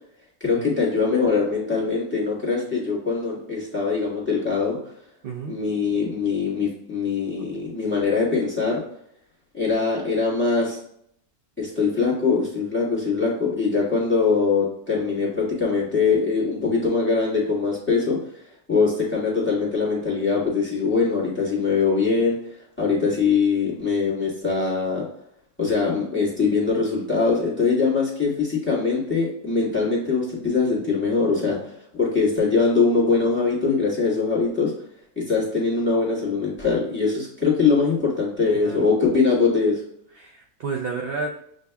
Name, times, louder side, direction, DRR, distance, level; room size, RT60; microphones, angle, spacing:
voice 1, 0.4-4.8 5.5-8.8 9.5-10.8 11.6-18.2 18.7-22.4 22.8-25.0 25.6-31.6 31.9-34.7 35.1-39.8, left 4 dB, 10° left, -5 dB, 1.4 m, -22 dB
voice 2, 5.2-5.6 38.6-38.8 40.1-41.3, right 4 dB, 60° right, 0 dB, 0.6 m, -30 dB
7.5 x 2.7 x 2.2 m, 0.70 s
omnidirectional pair, 1.5 m